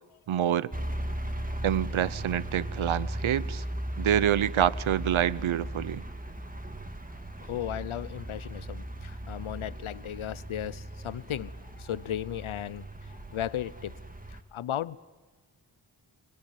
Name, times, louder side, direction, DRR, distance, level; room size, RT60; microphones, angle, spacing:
voice 1, 0.3-0.7 1.6-3.6 4.0-6.0, right 10 dB, 80° right, 0.7 m, -27 dB
sound 1, 0.7-14.4, right 1 dB, 15° right, 2.0 m, -37 dB
voice 2, 7.5-11.5 11.8-12.9 13.3-14.0 14.3-15.0, left 11 dB, 85° left, 0.7 m, -35 dB
24.5 x 21.5 x 9.1 m
cardioid pair, 45°, 47 cm